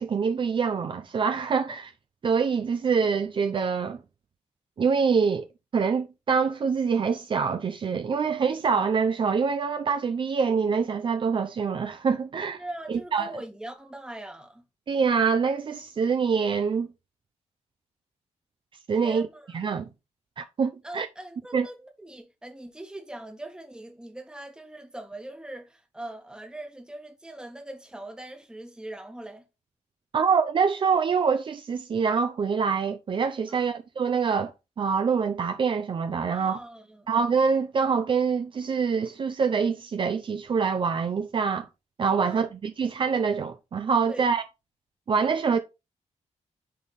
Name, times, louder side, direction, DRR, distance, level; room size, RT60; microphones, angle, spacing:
voice 1, 0.0-1.9 2.2-4.0 4.8-5.5 5.7-12.6 12.9-13.3 14.9-16.9 18.9-19.3 19.5-19.9 20.4-21.1 21.5-21.7 30.1-36.6 37.1-41.7 42.0-44.4 45.1-45.6, right 5 dB, 45° right, 0.7 m, -25 dB
voice 2, 12.6-14.6 19.0-19.7 20.8-29.4 33.5-33.6 36.3-37.1 42.2-42.5 44.1-44.3, right 1 dB, 5° right, 1.5 m, -41 dB
10.0 x 3.6 x 4.2 m
wide cardioid pair, 140°, 12 cm